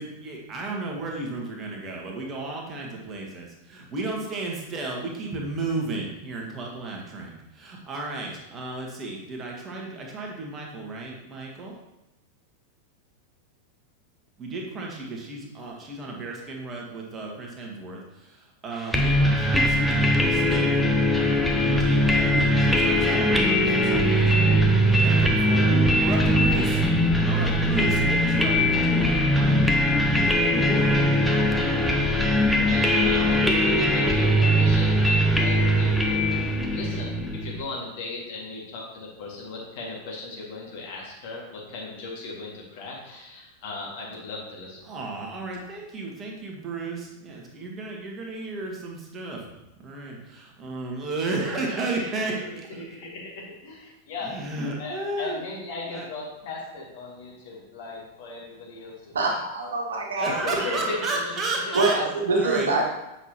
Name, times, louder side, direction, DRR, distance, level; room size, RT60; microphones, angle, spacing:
voice 1, 0.0-11.7 14.4-20.7 21.6-24.5 25.0-25.7 26.0-31.2 44.8-49.5 49.8-52.4 54.2-55.4 55.9-56.0 60.2-61.9 62.3-62.7, right 2 dB, 25° right, -1 dB, 1.6 m, -33 dB
sound 1, 18.9-37.6, equal, ahead, 0.8 m, -21 dB
voice 2, 32.0-36.3 36.7-44.9 52.3-54.4 54.8-59.2 60.4-62.0, left 3 dB, 50° left, -3 dB, 2.2 m, -37 dB
voice 3, 59.1-60.3 61.7-62.8, right 3 dB, 65° right, -1 dB, 1.5 m, -24 dB
7.9 x 5.8 x 3.0 m, 0.92 s
figure-of-eight pair, 90°, 0 cm